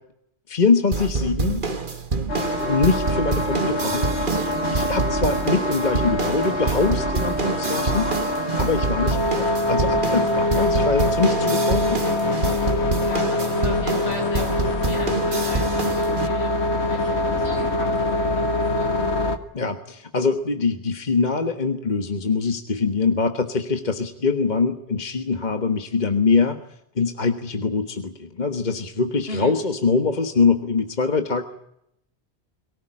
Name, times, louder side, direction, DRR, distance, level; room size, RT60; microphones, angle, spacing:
voice 1, 0.5-1.6 2.7-4.4 4.7-8.1 8.6-12.0 19.5-26.6 26.9-31.4, left 4 dB, 45° left, 7 dB, 1.5 m, -23 dB
sound 1, 0.9-16.3, right 3 dB, 50° right, 1.7 m, -27 dB
sound 2, 2.3-19.4, left 1 dB, 90° left, 2.0 m, -24 dB
voice 2, 7.7-8.2 13.0-19.1 29.3-29.5, left 1 dB, 75° left, 2 dB, 7.3 m, -36 dB
23.0 x 18.0 x 10.0 m, 0.78 s
omnidirectional pair, 1.1 m